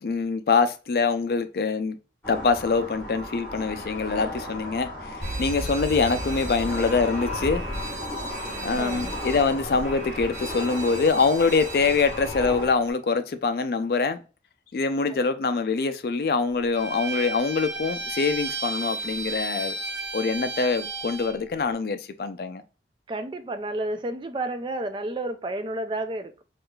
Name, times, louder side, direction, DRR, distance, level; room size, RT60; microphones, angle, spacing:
voice 1, 0.0-2.0 2.3-7.6 8.6-14.2 14.7-19.7 20.1-22.6, left 4 dB, 60° left, 0.4 m, -24 dB
sound 1, 2.2-12.7, left 1 dB, 15° left, 1.4 m, -35 dB
Alarm, 5.2-12.9, right 2 dB, 45° right, 1.1 m, -37 dB
voice 2, 8.7-9.1 23.1-26.4, right 2 dB, 25° right, 0.3 m, -31 dB
Bowed string instrument, 16.7-21.4, right 2 dB, 70° right, 1.0 m, -33 dB
4.5 x 2.4 x 2.3 m
head